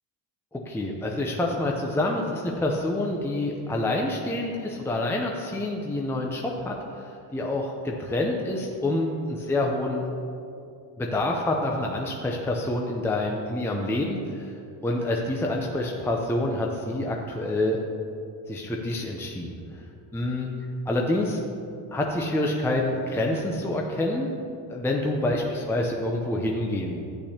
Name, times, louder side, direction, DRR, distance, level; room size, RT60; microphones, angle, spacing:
voice 1, 0.5-10.1 11.0-14.5 14.8-17.8 18.5-19.6 20.1-20.5 20.9-21.4 21.9-24.3 24.7-27.0, left 1 dB, 5° left, 0 dB, 0.6 m, -27 dB
11.5 x 8.5 x 2.9 m, 2.5 s
cardioid pair, 120°, 44 cm